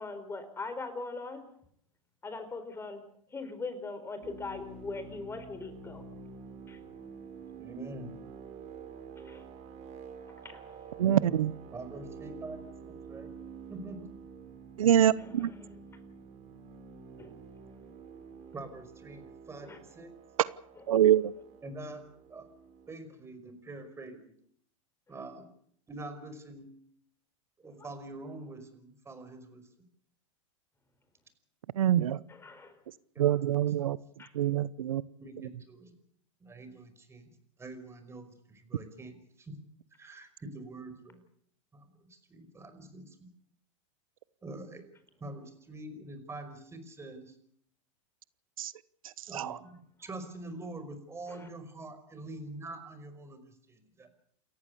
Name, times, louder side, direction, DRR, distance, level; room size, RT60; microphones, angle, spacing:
voice 1, 0.0-1.4 2.2-3.0 3.3-6.0 6.7-6.8 9.2-9.4 10.4-10.8 15.2-15.8 17.2-17.4 19.6-19.8 20.8-20.9 32.3-32.8 34.2-34.3 51.3-51.5, left 3 dB, 15° left, 10 dB, 4.4 m, -41 dB
sound 1, 4.2-22.9, right 5 dB, 40° right, 5.2 m, -48 dB
voice 2, 7.6-8.1 11.0-11.4 11.7-13.3 13.7-14.1 18.5-20.1 21.6-22.0 22.3-22.5 22.9-24.3 25.1-25.5 25.9-26.7 27.6-29.6 33.2-33.7 35.2-35.9 36.4-37.3 37.6-39.5 40.0-41.2 41.7-43.2 44.4-44.8 45.2-47.3 49.3-53.4 53.7-54.1, right 2 dB, 15° right, 9 dB, 5.3 m, -45 dB
voice 3, 11.0-11.5 14.8-15.5 20.9-21.2 31.8-32.2 33.2-34.0 34.3-35.0 48.6-48.7 49.3-49.5, right 11 dB, 85° right, 19 dB, 0.9 m, -25 dB
29.0 x 14.5 x 8.4 m, 0.65 s
hypercardioid pair, 120°, 17 cm